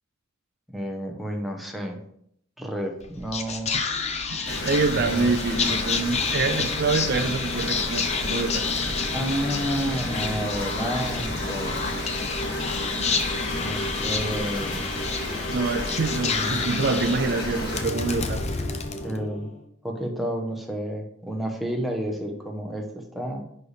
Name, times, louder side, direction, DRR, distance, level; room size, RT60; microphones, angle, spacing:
voice 1, 0.7-2.0 2.6-3.7 4.9-5.3 9.1-11.9 13.5-14.8 16.2-16.6 18.9-19.5 19.8-23.4, equal, ahead, 1 dB, 1.0 m, -31 dB
Whispering, 3.0-19.6, left 4 dB, 35° left, 0.7 m, -30 dB
voice 2, 4.3-8.7 12.5-12.6 15.5-18.4, right 3 dB, 55° right, 6 dB, 0.5 m, -26 dB
sound 1, 4.4-17.8, left 1 dB, 55° left, 2.0 m, -32 dB
10.0 x 4.2 x 3.4 m, 0.70 s
head